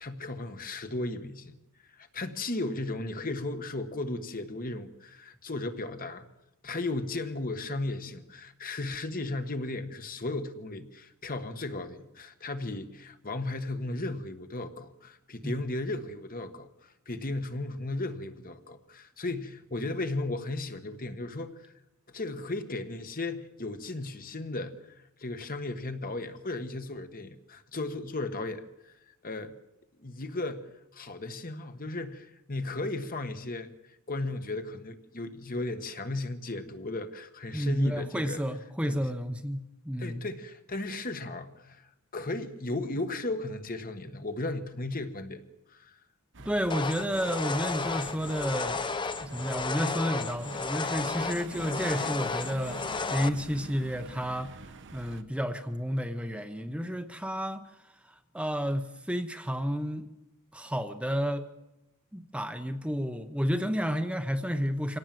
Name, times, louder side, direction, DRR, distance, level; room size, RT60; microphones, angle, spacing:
voice 1, 0.0-1.6 1.9-6.3 6.6-21.7 22.1-29.5 30.0-33.7 34.1-38.4 38.8-39.0 40.0-45.4 45.7-45.9, left 2 dB, 40° left, 8 dB, 1.5 m, -35 dB
voice 2, 37.5-40.3 46.4-48.8 49.2-52.8 53.1-57.6 58.3-60.1 60.5-61.5 62.1-65.0, equal, 5° right, 7 dB, 0.9 m, -31 dB
sound 1, 46.3-55.2, right 3 dB, 55° right, 1.2 m, -46 dB
sound 2, 46.7-53.3, left 4 dB, 20° left, 0.7 m, -33 dB
25.5 x 18.0 x 7.7 m, 0.92 s
head